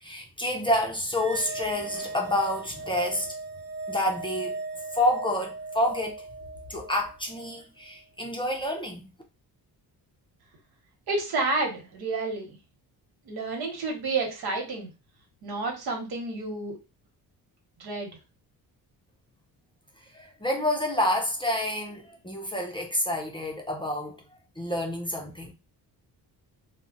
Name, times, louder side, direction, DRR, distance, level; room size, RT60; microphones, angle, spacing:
voice 1, 0.0-3.3 3.9-4.5 4.9-6.3 6.7-9.1 20.1-24.2 24.6-25.5, left 1 dB, 15° left, 0.4 m, -28 dB
sound 1, 1.0-7.6, right 3 dB, 45° right, 0.6 m, -38 dB
voice 2, 11.1-12.6 13.2-14.9 15.4-16.8 17.8-18.2, right 3 dB, 80° right, 1.2 m, -30 dB
2.3 x 2.0 x 3.8 m
cardioid pair, 130°, 37 cm